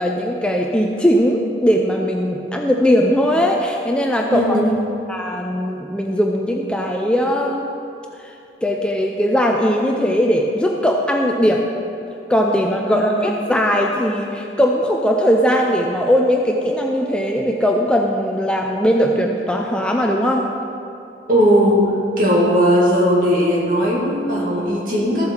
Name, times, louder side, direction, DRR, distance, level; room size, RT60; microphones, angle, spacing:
voice 1, 0.0-4.6 5.1-7.7 8.6-11.6 12.3-20.5, equal, 5° left, 1 dB, 0.5 m, -19 dB
voice 2, 4.3-4.7 12.8-13.2 21.3-25.3, equal, 50° right, -4 dB, 2.2 m, -17 dB
14.0 x 7.5 x 4.5 m, 2.7 s
head